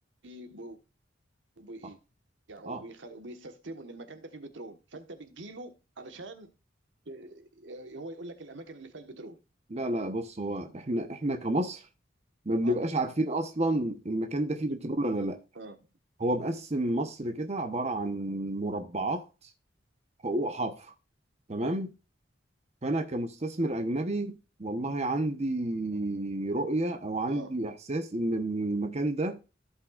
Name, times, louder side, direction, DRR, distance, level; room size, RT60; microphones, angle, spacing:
voice 1, 0.2-0.8 1.6-2.0 2.5-6.5 7.1-9.4 12.6-12.7 15.5-15.8 27.3-27.5, right 2 dB, 75° right, 1.3 m, -44 dB
voice 2, 9.7-11.9 12.5-15.4 16.2-19.2 20.2-20.9 21.5-21.9 22.8-29.4, right 1 dB, 35° right, 0.9 m, -30 dB
15.0 x 5.6 x 2.4 m
head